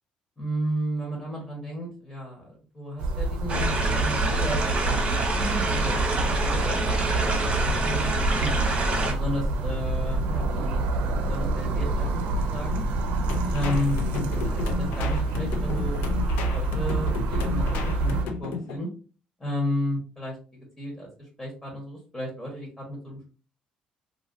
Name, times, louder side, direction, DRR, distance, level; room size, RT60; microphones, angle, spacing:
voice 1, 0.4-4.6 4.9-8.2 8.4-8.5 9.0-10.8 11.1-12.8 13.5-16.0 16.4-18.9 19.4-20.4 20.8-23.3, equal, 15° left, -2 dB, 1.2 m, -33 dB
sound 1, 3.0-18.3, right 2 dB, 85° right, 0.5 m, -27 dB
sound 2, 3.5-9.1, right 3 dB, 45° right, 1.1 m, -26 dB
sound 3, 13.3-18.8, left 4 dB, 85° left, 0.5 m, -33 dB
2.8 x 2.6 x 2.6 m, 0.36 s
cardioid pair, 90°, 3 cm